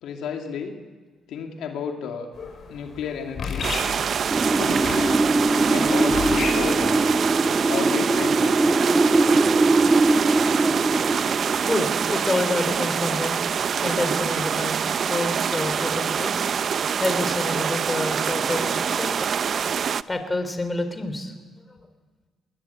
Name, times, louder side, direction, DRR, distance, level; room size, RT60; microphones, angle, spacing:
voice 1, 0.0-0.8 1.3-2.3 2.7-3.7 4.6-7.0 7.7-8.6, left 7 dB, 80° left, 3 dB, 2.5 m, -32 dB
sound 1, 2.3-7.3, left 4 dB, 55° left, 5.4 m, -33 dB
sound 2, 3.6-20.0, right 7 dB, 55° right, 0.6 m, -25 dB
Wind, 4.3-13.0, right 2 dB, 20° right, 1.5 m, -22 dB
voice 2, 11.6-13.4 13.8-14.8 15.1-16.4 17.0-19.1 20.1-21.3, left 2 dB, 20° left, 8 dB, 3.6 m, -28 dB
20.5 x 20.5 x 8.5 m, 1.4 s
cardioid pair, 90°, 0 cm